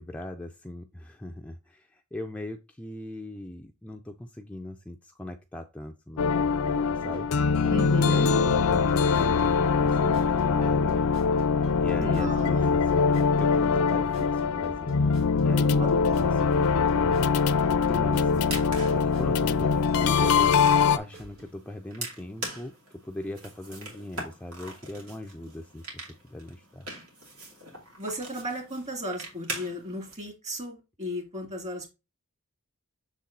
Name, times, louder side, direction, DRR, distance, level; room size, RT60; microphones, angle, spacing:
voice 1, 0.0-7.3 8.1-11.0 11.8-15.9 16.2-17.3 17.8-18.4 18.9-22.7 23.0-26.9, left 1 dB, 5° left, 4 dB, 0.4 m, -39 dB
sound 1, 6.2-21.0, left 5 dB, 70° left, 0.5 m, -23 dB
sound 2, 6.9-21.5, left 1 dB, 65° right, 2.8 m, -48 dB
voice 2, 7.7-8.3 12.0-12.7 15.8-16.2 28.0-31.9, equal, 35° right, 2 dB, 2.4 m, -35 dB
sound 3, 18.2-30.1, right 2 dB, 85° right, 2.6 m, -42 dB
6.6 x 4.1 x 3.8 m, 0.27 s
head